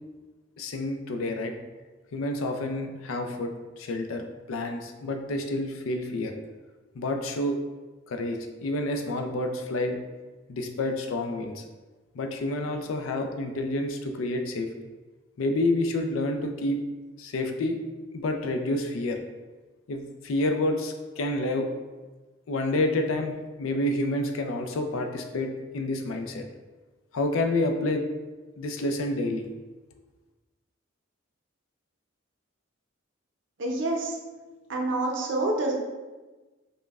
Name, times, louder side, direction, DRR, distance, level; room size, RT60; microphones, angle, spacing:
voice 1, 0.6-1.5 2.1-6.3 7.0-7.6 8.1-10.0 10.5-11.6 12.1-14.7 15.4-16.8 17.2-17.8 18.1-19.2 19.9-21.7 22.5-26.4 27.1-28.1 28.6-29.5, left 1 dB, 90° left, 5 dB, 0.4 m, -29 dB
voice 2, 33.6-34.2 34.7-35.7, right 2 dB, 65° right, 0 dB, 0.6 m, -27 dB
5.1 x 2.2 x 2.3 m, 1.2 s
head